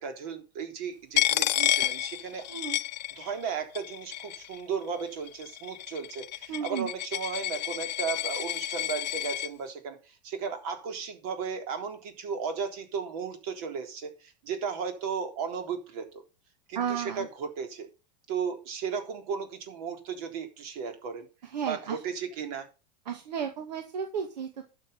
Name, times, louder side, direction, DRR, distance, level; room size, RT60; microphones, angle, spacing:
voice 1, 0.0-2.5 3.2-16.2 16.7-17.9 18.3-21.3 21.7-22.7, right 6 dB, 60° right, 5 dB, 3.9 m, -35 dB
Coin (dropping), 1.2-3.5 3.8-4.6 5.3-9.5, left 13 dB, 85° left, 0.7 m, -30 dB
voice 2, 6.5-6.9 16.8-17.3 21.4-22.0 23.1-24.6, right 7 dB, 80° right, 5 dB, 2.1 m, -33 dB
12.0 x 7.1 x 5.5 m, 0.30 s
hypercardioid pair, 115°, 21 cm